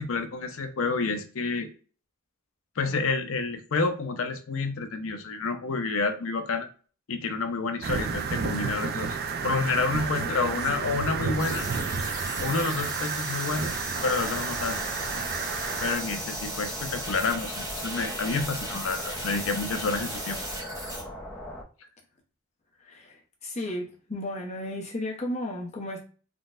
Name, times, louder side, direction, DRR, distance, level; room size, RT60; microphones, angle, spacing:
voice 1, 0.0-1.7 2.8-6.7 7.1-9.2 9.4-11.7 12.4-13.7 14.0-14.8 15.8-20.4, left 3 dB, 65° left, 0.5 m, -29 dB
sound 1, 7.8-16.0, right 5 dB, 45° right, 0.3 m, -31 dB
voice 2, 10.0-10.6 22.8-23.1 23.4-26.0, left 1 dB, 30° left, 0.8 m, -34 dB
sound 2, 11.4-21.0, right 1 dB, 15° right, 0.9 m, -36 dB
sound 3, 13.9-21.6, equal, 10° left, 0.6 m, -40 dB
3.7 x 2.1 x 2.4 m
head